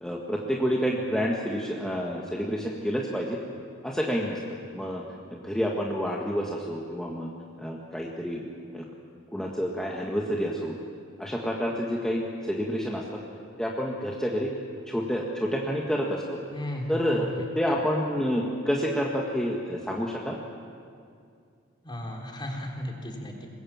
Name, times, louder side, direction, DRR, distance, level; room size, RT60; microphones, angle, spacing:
voice 1, 0.0-3.4 3.8-4.4 4.7-5.0 5.3-7.3 7.6-8.4 8.7-8.8 9.3-10.8 11.2-13.0 13.6-14.5 14.9-16.4 16.9-17.2 17.5-20.4, equal, 5° left, -2 dB, 1.6 m, -28 dB
voice 2, 16.5-17.5 21.8-23.5, left 1 dB, 20° left, 0 dB, 3.5 m, -35 dB
24.5 x 21.5 x 7.4 m, 2.3 s
head